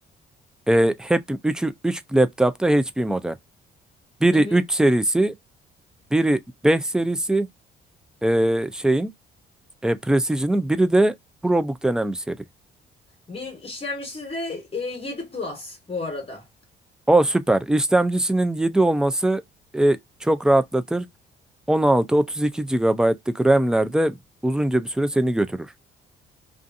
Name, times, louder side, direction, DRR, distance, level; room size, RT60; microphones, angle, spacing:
voice 1, 0.7-3.3 4.2-5.3 6.1-7.5 8.2-9.1 9.8-11.1 11.4-12.4 17.1-19.4 19.7-21.1 21.7-24.2 24.4-25.6, right 1 dB, 5° right, 0.3 m, -21 dB
voice 2, 4.3-4.6 13.3-16.4, left 3 dB, 30° left, 1.2 m, -32 dB
2.5 x 2.4 x 2.5 m
cardioid pair, 90°, 20 cm